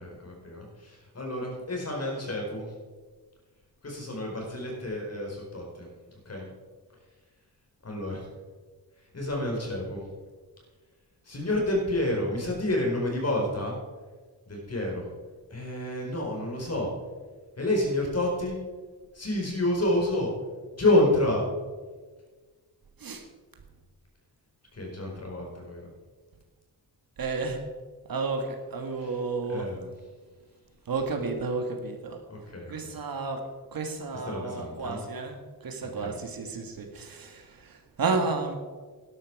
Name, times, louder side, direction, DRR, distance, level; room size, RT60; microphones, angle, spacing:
voice 1, 0.0-2.7 3.8-5.9 6.2-6.4 7.8-8.3 9.1-10.1 11.2-13.8 14.5-15.1 15.5-16.9 17.6-18.6 19.1-20.3 20.8-21.4 24.7-25.9 29.5-29.9 32.3-32.7 34.3-35.0 36.0-36.1, left 1 dB, 40° left, 0 dB, 4.8 m, -29 dB
voice 2, 27.2-27.6 28.1-29.7 30.9-32.2 32.7-38.6, right 4 dB, 60° right, 5 dB, 1.8 m, -32 dB
12.0 x 11.5 x 4.8 m, 1.4 s
cardioid pair, 80°, 40 cm